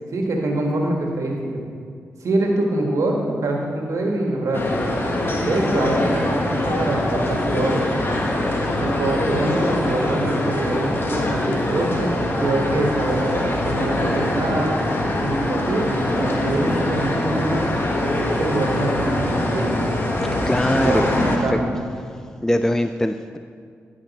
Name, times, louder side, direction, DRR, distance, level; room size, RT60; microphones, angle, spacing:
voice 1, 0.1-1.6 2.2-4.7 5.4-7.8 8.8-12.1 12.4-14.8 15.2-15.9 16.2-17.6 18.4-19.8 20.7-21.0 21.4-21.7, right 2 dB, 70° right, 0 dB, 1.4 m, -24 dB
sound 1, 4.5-21.4, left 1 dB, 40° left, 1.4 m, -23 dB
voice 2, 20.4-21.0 21.4-21.6 22.4-23.4, left 1 dB, 10° left, 8 dB, 0.3 m, -21 dB
10.0 x 6.0 x 4.1 m, 2.2 s
supercardioid pair, 40°, 5 cm